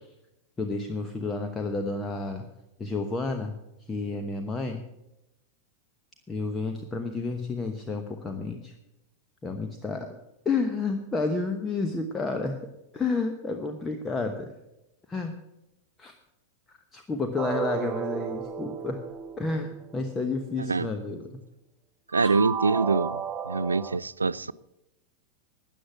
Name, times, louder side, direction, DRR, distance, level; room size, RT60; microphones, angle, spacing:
voice 1, 0.6-2.4 2.8-3.5 3.9-4.8 6.3-8.7 9.4-10.1 10.4-12.6 12.9-14.5 15.1-15.3 16.0-16.1 16.7-19.0 19.4-21.3 22.2-22.3, left 3 dB, 15° left, 5 dB, 1.1 m, -30 dB
sound 1, 17.4-20.3 22.1-24.0, right 7 dB, 25° right, 0.8 m, -34 dB
voice 2, 22.1-23.2 23.5-24.5, right 4 dB, 75° right, 20 dB, 0.3 m, -25 dB
13.0 x 9.2 x 6.0 m, 0.90 s
figure-of-eight pair, 90°, 0 cm